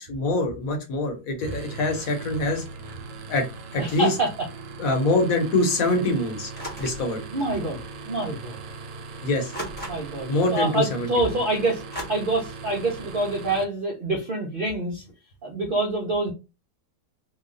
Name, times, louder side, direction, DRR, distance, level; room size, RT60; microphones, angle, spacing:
voice 1, 0.0-2.6 3.3-3.4 3.7-4.1 4.8-6.5 6.8-7.2 9.2-9.5 10.3-11.4, left 2 dB, 60° left, 3 dB, 1.2 m, -24 dB
sound 1, 1.4-13.6, right 4 dB, 90° right, 1.3 m, -39 dB
voice 2, 3.8-4.3 7.3-8.6 9.9-11.8 12.1-15.0 15.4-16.3, right 2 dB, 70° right, 0 dB, 0.5 m, -26 dB
sound 2, 6.5-7.1 8.1-8.2 9.5-10.3 11.9-12.0, equal, 10° left, 0.7 m, -35 dB
3.0 x 2.3 x 3.8 m, 0.29 s
omnidirectional pair, 1.8 m